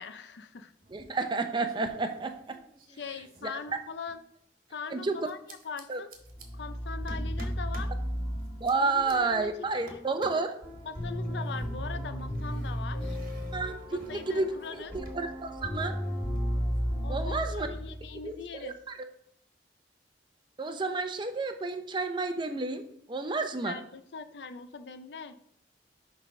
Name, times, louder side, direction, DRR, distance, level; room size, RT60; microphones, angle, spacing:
voice 1, 0.0-0.7 2.9-4.2 4.7-6.1 6.5-7.9 8.7-10.0 10.8-13.2 13.9-15.0 17.0-18.8 23.6-25.4, left 5 dB, 80° left, 10 dB, 0.5 m, -41 dB
sound 1, 0.8-1.4 1.6-4.2 5.2-6.5 7.1-8.0 8.4-9.1 9.9-10.5 11.2-15.2 15.5-16.8, right 1 dB, 50° right, 1.3 m, -51 dB
voice 2, 0.9-2.6 3.4-3.5 4.9-5.2 5.9-6.0 8.6-10.5 13.5-14.5 15.1-16.0 17.1-17.7 18.2-18.7 20.6-23.8, right 3 dB, 25° right, 7 dB, 0.6 m, -30 dB
sound 2, 6.2-18.3, equal, 20° left, 2.0 m, -34 dB
6.6 x 3.4 x 5.3 m, 0.70 s
head